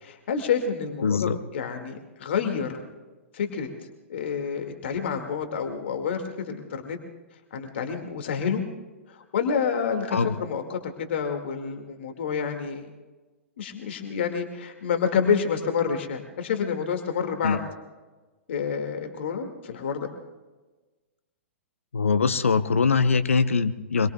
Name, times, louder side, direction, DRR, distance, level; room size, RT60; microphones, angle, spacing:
voice 1, 0.0-2.8 3.3-3.7 4.1-7.0 7.5-8.6 9.1-12.9 13.6-17.6 18.5-20.1, left 6 dB, 60° left, 4 dB, 2.0 m, -28 dB
voice 2, 1.0-1.4 10.1-10.4 17.4-17.6 21.9-24.1, left 5 dB, 75° left, 11 dB, 0.7 m, -22 dB
25.0 x 22.5 x 2.3 m, 1.2 s
figure-of-eight pair, 110°, 7 cm